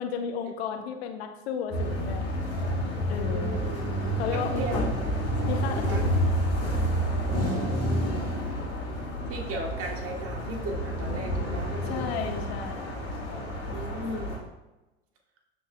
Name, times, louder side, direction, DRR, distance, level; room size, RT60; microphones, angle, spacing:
voice 1, 0.0-2.3 3.1-3.6 4.2-5.0 5.5-6.2 11.8-13.0, left 7 dB, 70° left, 6 dB, 0.8 m, -34 dB
sound 1, 1.7-14.4, equal, 45° left, 2.2 m, -29 dB
voice 2, 3.3-3.8 4.3-4.9 5.7-6.0 7.3-8.3 9.3-12.1 13.7-14.4, right 2 dB, 45° right, 2 dB, 1.5 m, -36 dB
12.0 x 4.2 x 2.3 m, 1.1 s
figure-of-eight pair, 70°, 32 cm